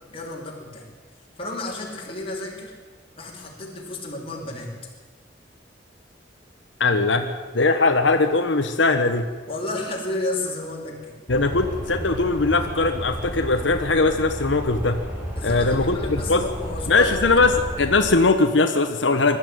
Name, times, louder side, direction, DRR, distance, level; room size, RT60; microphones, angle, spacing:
voice 1, 0.1-0.9 1.4-2.7 3.2-4.7 9.4-11.1 15.3-17.6, left 2 dB, 30° left, -1 dB, 5.0 m, -32 dB
voice 2, 6.8-9.3 11.3-15.0 15.4-16.4 16.9-19.4, left 3 dB, 90° left, 6 dB, 1.3 m, -20 dB
sound 1, 11.3-18.1, equal, 10° right, 5.0 m, -32 dB
21.0 x 13.5 x 9.3 m, 1.4 s
head